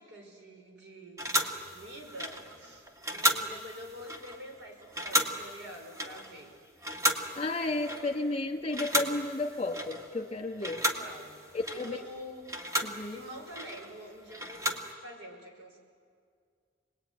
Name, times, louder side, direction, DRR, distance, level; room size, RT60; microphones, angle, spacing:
voice 1, 0.0-2.9 3.1-6.6 10.8-12.6 13.0-14.7 15.0-15.8, equal, 85° right, 2 dB, 5.4 m, -47 dB
sound 1, 1.2-8.4 8.7-10.3 10.6-14.9, equal, 20° right, 2.0 m, -34 dB
voice 2, 7.4-10.8 11.5-12.0 12.8-13.2, left 2 dB, 35° left, 5 dB, 2.0 m, -33 dB
27.0 x 20.5 x 9.6 m, 2.1 s
head